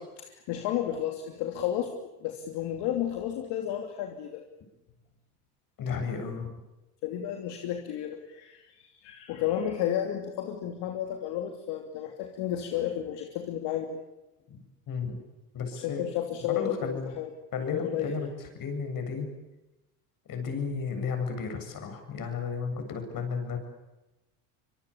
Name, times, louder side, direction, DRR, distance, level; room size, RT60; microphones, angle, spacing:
voice 1, 0.3-4.4 7.0-14.0 15.7-17.3 17.7-18.2, left 10 dB, 65° left, 4 dB, 3.1 m, -32 dB
voice 2, 5.8-6.5 14.5-14.6 14.9-15.2 15.5-16.0 16.6-17.1 17.5-18.3 18.5-19.3 20.3-23.6, left 5 dB, 50° left, 6 dB, 7.8 m, -33 dB
25.5 x 23.0 x 8.6 m, 0.98 s
supercardioid pair, 100°, 44 cm